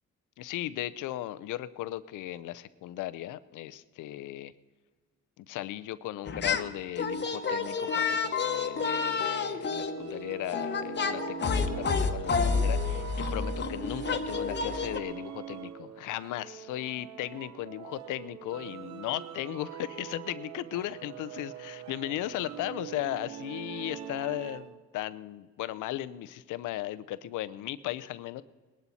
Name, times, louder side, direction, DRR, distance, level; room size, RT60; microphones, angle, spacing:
voice 1, 0.4-4.5 5.4-13.0 13.3-28.4, left 14 dB, 85° left, 15 dB, 0.6 m, -36 dB
sound 1, 6.2-6.7 7.0-15.0, left 5 dB, 35° left, 1.1 m, -30 dB
sound 2, 7.2-24.9, right 11 dB, 65° right, 0.8 m, -44 dB
20.5 x 11.5 x 4.2 m, 1.4 s
cardioid pair, 90°, 30 cm